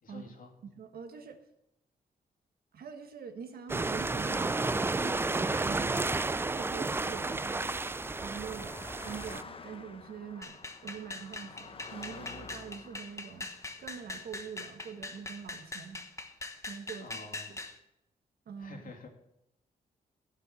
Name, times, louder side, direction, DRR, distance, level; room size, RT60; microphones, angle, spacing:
voice 1, 0.0-0.5 17.0-17.5 18.6-19.1, left 3 dB, 60° left, 1 dB, 2.7 m, -48 dB
voice 2, 0.6-1.4 2.7-4.6 5.0-6.1 6.5-7.7 8.2-8.8 9.0-13.5 13.8-16.0 16.6-17.2 17.5-17.6 18.4-18.8, right 7 dB, 75° right, 7 dB, 1.6 m, -44 dB
sound 1, 3.7-9.4, right 3 dB, 15° right, 0.4 m, -32 dB
Car passing by, 4.7-16.0, left 4 dB, 35° left, 0.9 m, -52 dB
sound 2, 10.4-17.8, left 2 dB, 20° left, 1.2 m, -42 dB
15.5 x 5.9 x 7.8 m, 0.85 s
cardioid pair, 110°, 16 cm